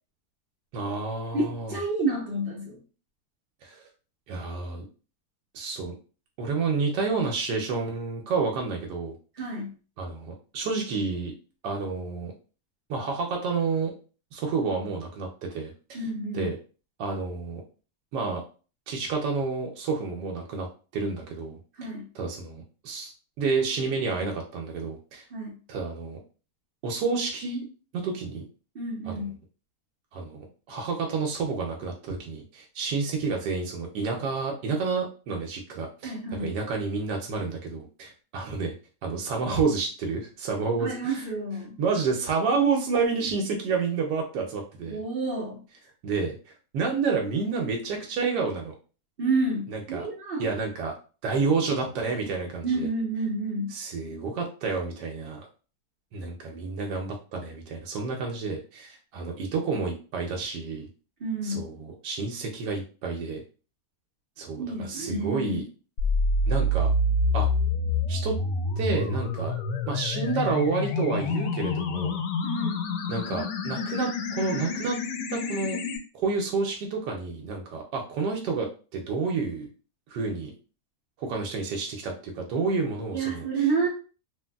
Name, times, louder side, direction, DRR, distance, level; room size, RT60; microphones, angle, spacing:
voice 1, 0.7-1.8 3.6-3.8 4.3-4.8 5.5-5.9 6.4-9.5 10.0-11.3 11.6-12.3 12.9-13.9 14.3-16.0 16.3-16.6 17.0-17.6 18.1-18.4 18.9-20.7 20.9-21.9 22.1-23.1 23.4-25.3 25.7-26.2 26.8-27.6 28.0-28.4 29.1-29.2 30.1-38.7 39.0-41.3 41.8-45.0 46.0-46.3 46.7-48.7 49.7-50.1 50.4-50.9 51.2-52.9 53.7-55.5 56.1-60.9 61.4-63.4 64.4-65.6 66.5-66.9 67.3-67.5 68.1-68.4 68.8-69.5 69.9-72.2 73.1-75.0 75.3-75.8 76.1-79.7 80.1-80.5 81.2-83.6, right 4 dB, 90° right, 1 dB, 1.2 m, -29 dB
voice 2, 1.3-2.8 9.4-9.7 15.9-16.5 21.8-22.1 25.3-25.5 28.7-29.4 36.0-36.5 40.8-41.7 44.8-45.6 49.2-50.5 52.6-53.8 61.2-61.7 64.6-65.6 72.4-72.8 83.1-83.9, right 3 dB, 55° right, -3 dB, 0.6 m, -29 dB
sound 1, 66.0-76.0, left 2 dB, 90° left, 1.2 m, -27 dB
3.1 x 2.5 x 2.2 m, 0.36 s
omnidirectional pair, 1.8 m